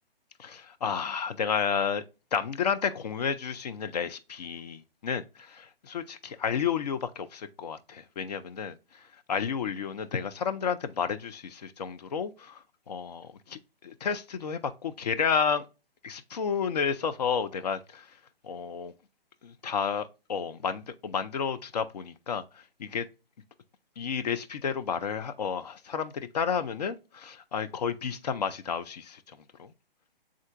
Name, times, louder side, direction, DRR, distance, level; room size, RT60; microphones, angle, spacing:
voice 1, 0.4-2.0 2.3-15.6 16.0-18.1 18.4-18.9 19.4-23.1 24.0-29.7, left 6 dB, 45° left, 0.4 m, -31 dB
6.4 x 3.7 x 2.2 m
figure-of-eight pair, 140°, 30 cm